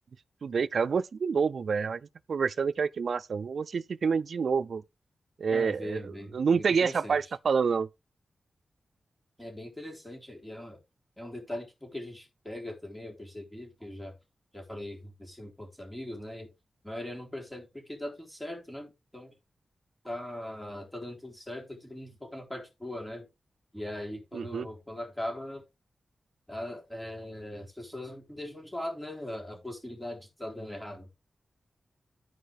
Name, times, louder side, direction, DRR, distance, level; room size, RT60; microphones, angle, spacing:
voice 1, 0.4-2.0 2.3-4.8 5.4-6.0 6.3-7.9 24.3-24.7, right 5 dB, 70° right, 0.5 m, -27 dB
voice 2, 5.5-7.3 9.4-10.8 11.2-14.1 14.5-16.5 16.8-19.3 20.0-23.3 23.7-25.6 26.5-31.1, left 1 dB, 5° left, 4.1 m, -40 dB
14.5 x 4.8 x 3.6 m
wide cardioid pair, 100°, 0 cm